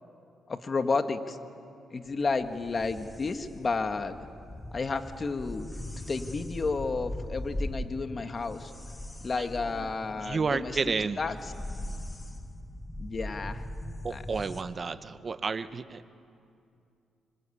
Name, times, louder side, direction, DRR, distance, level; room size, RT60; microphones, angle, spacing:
voice 1, 0.5-1.4 1.9-4.3 4.7-5.7 6.1-8.7 9.2-10.8 11.2-11.4 13.0-13.6 14.1-14.2, left 4 dB, 35° left, 8 dB, 1.7 m, -31 dB
sound 1, 2.1-14.6, left 1 dB, 15° left, 1.6 m, -40 dB
voice 2, 9.3-11.2 14.0-16.1, right 4 dB, 40° right, 12 dB, 1.1 m, -32 dB
26.0 x 25.0 x 8.6 m, 2.5 s
cardioid pair, 80°, 0 cm